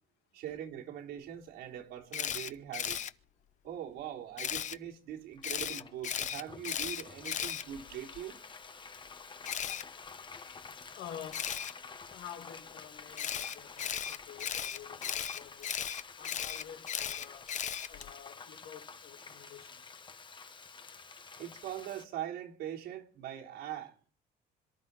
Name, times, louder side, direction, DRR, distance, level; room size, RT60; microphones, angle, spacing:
voice 1, 0.3-3.0 3.6-8.4 21.4-23.9, right 11 dB, 85° right, 3.7 m, -42 dB
Camera, 2.1-3.1 4.4-4.8 5.4-8.2 9.4-9.8 11.3-11.7 13.2-18.1, left 9 dB, 45° left, 0.8 m, -36 dB
Frying (food), 5.4-22.0, left 5 dB, 30° left, 1.3 m, -50 dB
voice 2, 10.9-11.5 12.1-15.8 16.2-17.6 17.9-20.0, left 10 dB, 85° left, 2.2 m, -49 dB
27.0 x 13.0 x 4.2 m
cardioid pair, 110°, 17 cm